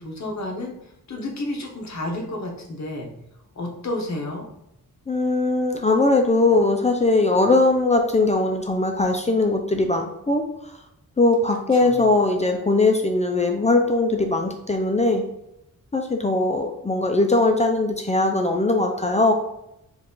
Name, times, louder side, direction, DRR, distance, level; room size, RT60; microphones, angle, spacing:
voice 1, 0.0-3.1 3.5-4.5 11.7-12.0, left 1 dB, 55° left, 0 dB, 1.0 m, -31 dB
voice 2, 5.1-10.4 11.2-15.2 15.9-19.3, left 2 dB, 20° left, 3 dB, 0.4 m, -20 dB
4.6 x 2.4 x 3.7 m, 0.82 s
wide cardioid pair, 115°, 33 cm